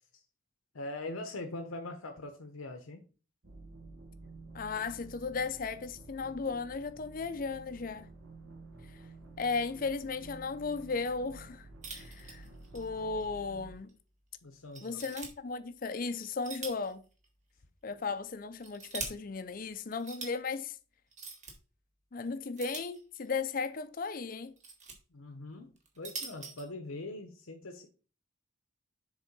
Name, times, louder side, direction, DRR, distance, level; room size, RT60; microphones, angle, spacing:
voice 1, 0.7-3.0 14.4-15.0 25.1-27.9, left 2 dB, 85° left, 0.8 m, -42 dB
sound 1, 3.4-13.7, right 2 dB, 75° right, 1.3 m, -51 dB
voice 2, 4.5-8.1 8.9-9.0 9.4-12.5 12.7-13.9 14.8-17.0 17.8-20.8 22.1-24.5, left 4 dB, 40° left, 0.5 m, -36 dB
sound 2, 11.8-12.9 13.2-13.3 13.9-14.0 14.7-15.3 16.2-16.9 17.2-17.3 18.3-19.1 19.9-20.3 21.1-21.5 22.6-23.4 24.3-24.9 25.8-26.6, right 4 dB, 35° right, 1.5 m, -43 dB
7.2 x 3.7 x 5.3 m
head